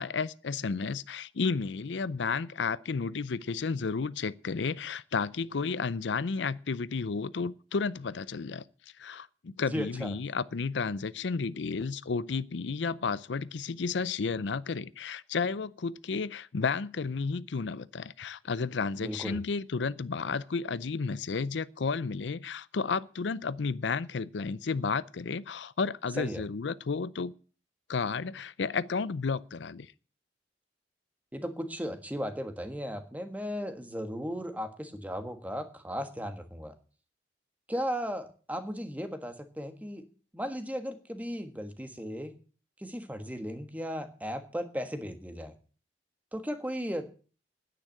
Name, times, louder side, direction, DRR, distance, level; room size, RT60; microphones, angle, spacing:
voice 1, 0.0-8.6 9.0-27.3 27.9-29.9, left 5 dB, 80° left, 0.5 m, -32 dB
voice 2, 9.6-10.1 19.0-19.4 26.2-26.4 31.3-36.7 37.7-40.0 40.3-42.4 42.8-45.5 46.3-47.0, equal, 10° right, 1.4 m, -36 dB
10.0 x 9.2 x 8.8 m
head